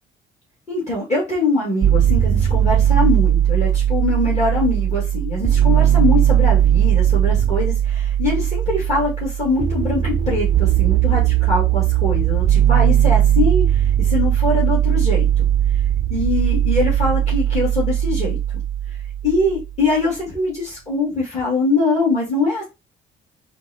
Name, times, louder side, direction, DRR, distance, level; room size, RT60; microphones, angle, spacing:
voice 1, 0.7-15.3 16.1-18.4 19.2-22.6, left 2 dB, 35° left, -6 dB, 2.2 m, -23 dB
sound 1, 1.8-19.8, right 10 dB, 35° right, 0.4 m, -18 dB
4.4 x 2.3 x 2.9 m, 0.24 s
cardioid pair, 90°, 20 cm